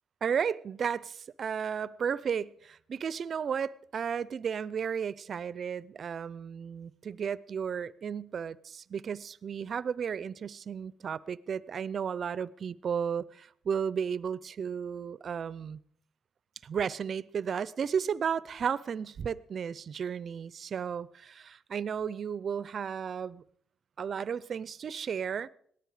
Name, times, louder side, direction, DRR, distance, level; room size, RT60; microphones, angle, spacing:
voice 1, 0.2-15.8 16.6-23.4 24.0-25.5, right 7 dB, 50° right, 0.5 m, -34 dB
18.0 x 13.0 x 4.9 m
cardioid pair, 90°, 0 cm